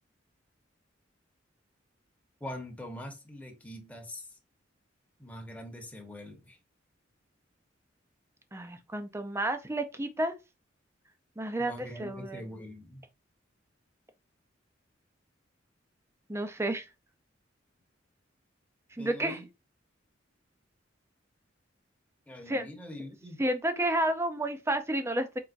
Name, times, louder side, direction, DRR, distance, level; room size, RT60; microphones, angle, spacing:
voice 1, 2.4-4.3 5.2-6.6 11.6-13.0 19.0-19.5 22.3-23.5, left 1 dB, 10° left, 1.1 m, -43 dB
voice 2, 8.5-10.4 11.4-12.4 16.3-16.8 19.0-19.4 22.5-22.7 23.4-25.4, right 1 dB, 15° right, 0.6 m, -31 dB
4.6 x 3.5 x 2.6 m
head